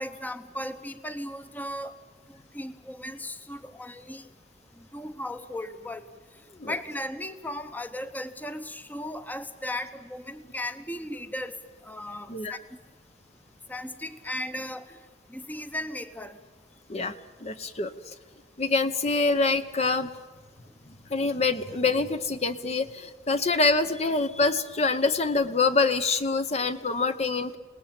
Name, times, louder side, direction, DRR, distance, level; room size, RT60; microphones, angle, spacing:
voice 1, 0.0-1.9 2.5-4.3 4.8-6.1 6.7-11.6 11.8-12.6 13.7-15.0 15.3-16.4, left 1 dB, 10° left, 10 dB, 0.9 m, -36 dB
voice 2, 17.4-18.1 18.6-20.1 21.1-27.6, left 3 dB, 35° left, 10 dB, 0.9 m, -25 dB
27.5 x 19.0 x 8.8 m, 1.4 s
head